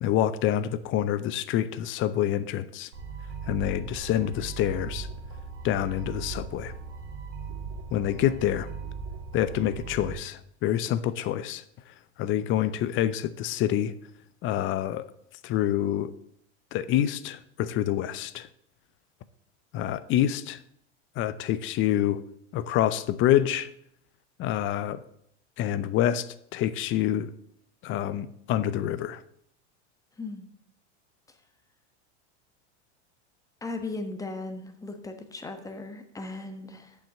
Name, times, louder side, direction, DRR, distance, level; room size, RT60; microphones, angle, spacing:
voice 1, 0.0-2.9 3.5-5.1 5.6-6.7 7.9-8.7 9.3-11.6 12.2-13.9 14.4-15.1 15.4-16.1 16.7-18.5 19.7-20.6 21.2-22.2 22.5-23.7 24.4-25.0 25.6-26.3 26.5-27.3 27.8-29.2, left 11 dB, 35° left, 0.5 m, -27 dB
sound 1, 2.9-10.1, right 5 dB, 80° right, 2.2 m, -38 dB
voice 2, 30.2-30.5 33.6-37.0, left 2 dB, 10° left, 1.1 m, -37 dB
7.3 x 5.7 x 7.4 m
supercardioid pair, 120°, 35 cm